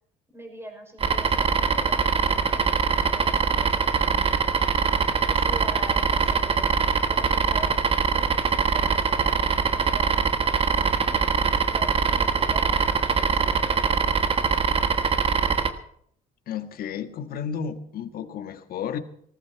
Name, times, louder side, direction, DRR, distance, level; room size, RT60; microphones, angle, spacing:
voice 1, 0.3-5.0 5.3-6.8 7.1-14.3, right 1 dB, 15° right, 3 dB, 6.0 m, -43 dB
sound 1, 1.0-15.7, right 5 dB, 35° right, 1.4 m, -23 dB
voice 2, 16.5-19.0, left 7 dB, 60° left, 8 dB, 1.6 m, -32 dB
18.5 x 14.0 x 4.6 m, 0.66 s
cardioid pair, 110°, 17 cm